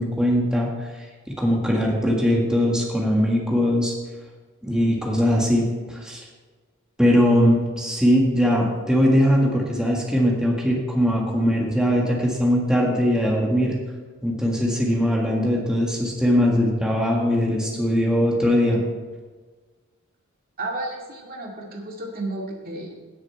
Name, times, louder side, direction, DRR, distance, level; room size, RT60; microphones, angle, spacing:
voice 1, 0.0-4.0 4.6-6.3 7.0-13.8 14.2-18.8, equal, 5° right, -3 dB, 1.7 m, -21 dB
voice 2, 20.6-22.9, right 2 dB, 45° right, -1 dB, 2.3 m, -32 dB
17.5 x 6.9 x 4.4 m, 1.4 s
head